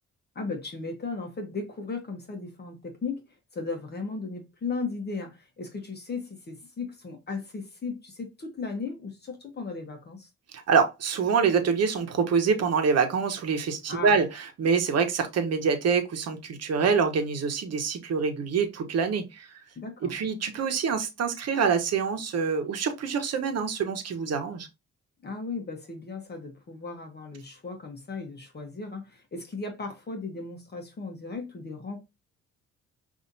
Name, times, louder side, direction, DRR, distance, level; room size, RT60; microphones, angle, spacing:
voice 1, 0.3-3.2 3.5-10.3 13.9-14.1 19.8-20.1 25.2-32.0, left 4 dB, 35° left, 1.1 m, -36 dB
voice 2, 10.5-19.5 20.1-24.7, right 5 dB, 55° right, 1.1 m, -26 dB
5.5 x 2.7 x 2.6 m
cardioid pair, 90°, 30 cm